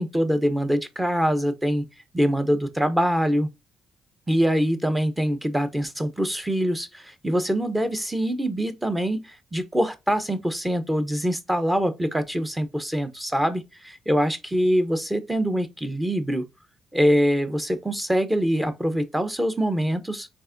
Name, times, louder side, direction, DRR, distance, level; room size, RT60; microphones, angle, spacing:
voice 1, 0.0-1.8 2.1-3.5 4.3-16.5 16.9-20.3, equal, 10° right, 0.9 m, -24 dB
4.6 x 3.7 x 2.6 m
cardioid pair, 90°, 0 cm